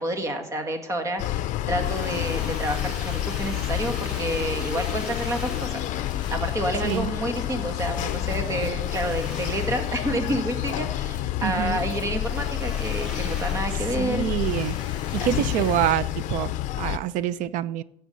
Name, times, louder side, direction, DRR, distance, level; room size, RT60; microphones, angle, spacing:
voice 1, 0.0-14.3 15.2-15.3, right 1 dB, 25° right, 1.9 m, -29 dB
sound 1, 1.2-17.0, left 13 dB, 70° left, 0.6 m, -29 dB
Drill, 1.7-7.2 7.9-11.2 12.1-16.9, left 2 dB, 5° right, 5.1 m, -42 dB
sound 2, 5.6-15.9, left 6 dB, 35° left, 2.8 m, -46 dB
voice 2, 11.4-11.8 14.0-14.8 15.1-17.8, right 12 dB, 75° right, 0.7 m, -26 dB
16.5 x 7.0 x 5.5 m
cardioid pair, 160°, 13 cm